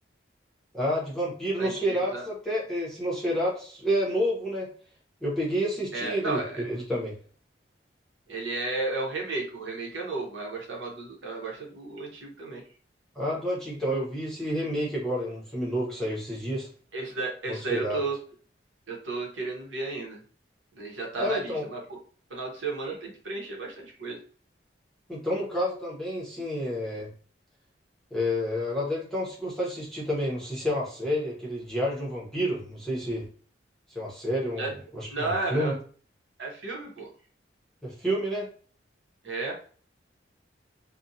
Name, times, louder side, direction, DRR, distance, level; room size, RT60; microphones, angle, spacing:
voice 1, 0.7-4.7 5.2-7.2 13.1-16.7 17.5-18.0 21.2-21.7 25.1-27.1 28.1-33.3 33.9-35.7 37.8-38.5, equal, 5° left, -6 dB, 0.7 m, -29 dB
voice 2, 1.6-2.2 5.9-6.6 8.3-12.6 16.9-18.2 18.9-20.2 20.8-22.0 22.3-24.2 34.6-34.7 35.1-35.8 36.4-37.1 39.2-39.5, right 3 dB, 80° right, -1 dB, 0.8 m, -33 dB
2.5 x 2.1 x 2.6 m, 0.43 s
head